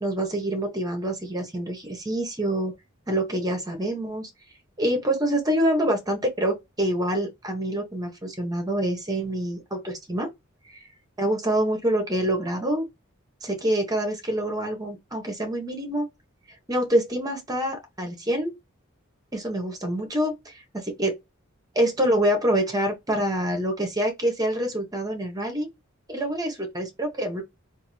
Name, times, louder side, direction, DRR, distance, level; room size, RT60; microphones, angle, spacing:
voice 1, 0.0-2.7 3.1-4.3 4.8-10.3 11.2-12.9 13.4-16.1 16.7-18.5 19.3-21.2 21.7-25.7 26.1-27.4, right 1 dB, 20° right, 1.2 m, -26 dB
3.7 x 2.7 x 3.2 m
head